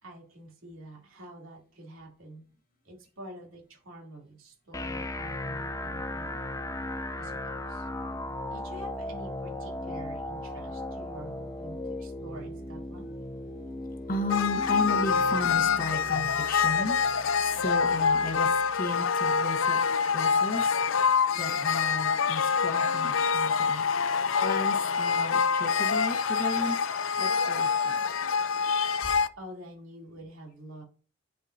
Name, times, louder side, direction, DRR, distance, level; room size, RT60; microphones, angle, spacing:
voice 1, 0.0-2.4 2.8-6.4 7.2-7.9 8.5-13.2 29.0-29.1 29.4-30.8, right 1 dB, 80° right, 0 dB, 2.9 m, -47 dB
sound 1, 4.7-18.7, left 1 dB, 15° left, 0.5 m, -37 dB
voice 2, 14.1-17.0 17.4-19.8 20.1-20.8 21.3-23.8 24.4-26.8 27.2-28.0, left 2 dB, 45° left, 5 dB, 1.2 m, -34 dB
sound 2, 14.3-29.3, left 6 dB, 70° left, 0.5 m, -26 dB
10.5 x 4.8 x 2.7 m, 0.36 s
head